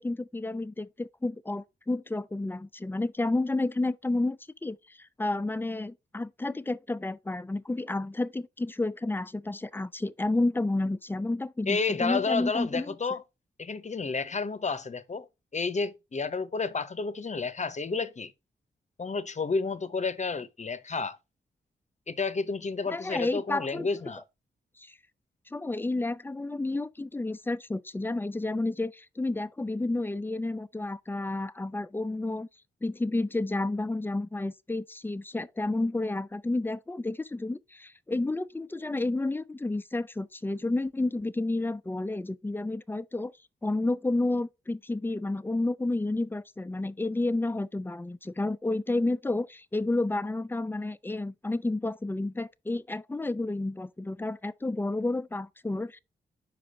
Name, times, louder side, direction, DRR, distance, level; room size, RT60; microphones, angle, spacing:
voice 1, 0.0-12.9 22.9-23.9 24.8-25.0 25.5-32.5 32.8-43.3 43.6-56.0, left 2 dB, 10° left, 0.4 m, -31 dB
voice 2, 11.7-13.2 13.6-15.3 15.5-18.3 19.0-21.2 22.1-24.2, left 4 dB, 40° left, 0.8 m, -31 dB
5.1 x 4.8 x 4.9 m
cardioid pair, 50°, 19 cm